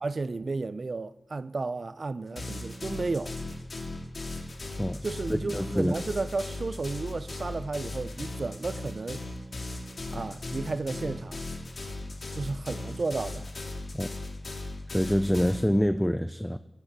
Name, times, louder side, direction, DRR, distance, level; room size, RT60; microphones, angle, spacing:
voice 1, 0.0-3.3 5.0-9.2 10.1-11.4 12.3-13.5, right 3 dB, 60° right, 0.5 m, -33 dB
sound 1, 2.4-15.6, left 2 dB, 65° left, 2.2 m, -37 dB
voice 2, 5.4-6.0 13.9-14.1 14.9-16.6, equal, 5° left, 0.4 m, -26 dB
16.5 x 6.4 x 7.4 m
wide cardioid pair, 70°, 0 cm